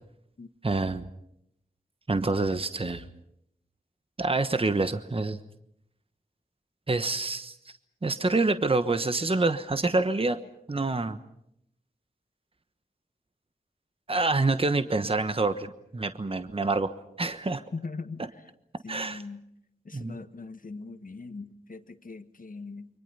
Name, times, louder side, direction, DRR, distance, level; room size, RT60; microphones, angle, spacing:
voice 1, 0.6-1.1 2.1-3.0 4.2-5.4 6.9-7.5 8.0-10.4 10.7-11.2 14.1-16.9 17.2-17.6 18.9-19.2 19.9-20.1, right 3 dB, 35° right, 10 dB, 1.2 m, -27 dB
voice 2, 17.7-18.4 18.8-19.4 19.8-22.9, left 4 dB, 55° left, 10 dB, 1.5 m, -40 dB
29.0 x 23.5 x 5.6 m, 0.75 s
cardioid pair, 45°, 16 cm